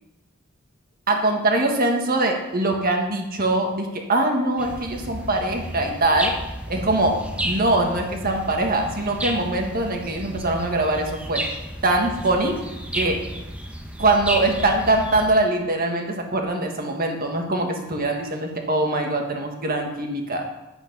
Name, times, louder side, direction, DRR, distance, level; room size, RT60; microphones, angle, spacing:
voice 1, 1.1-6.3 6.7-11.4 11.8-12.7 12.9-13.3 14.0-20.5, right 2 dB, 45° right, 2 dB, 1.6 m, -23 dB
sound 1, 4.6-15.4, right 1 dB, 5° right, 0.9 m, -32 dB
9.4 x 8.8 x 5.5 m, 0.99 s
head